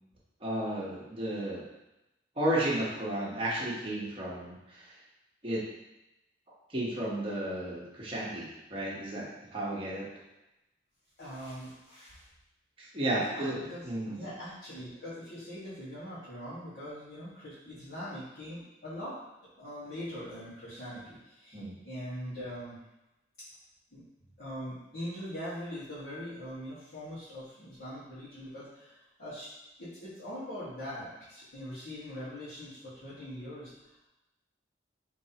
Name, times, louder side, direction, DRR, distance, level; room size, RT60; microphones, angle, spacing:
voice 1, 0.4-1.6 2.4-4.8 5.4-5.6 6.7-10.0 12.8-13.6 13.8-14.2 21.5-21.8, right 1 dB, 30° right, -6 dB, 1.2 m, -33 dB
voice 2, 11.2-12.3 13.1-19.2 19.6-22.8 23.4-23.5 23.9-24.0 24.4-29.5 29.8-33.9, equal, 55° left, -15 dB, 1.6 m, -42 dB
5.3 x 3.3 x 2.9 m, 0.95 s
head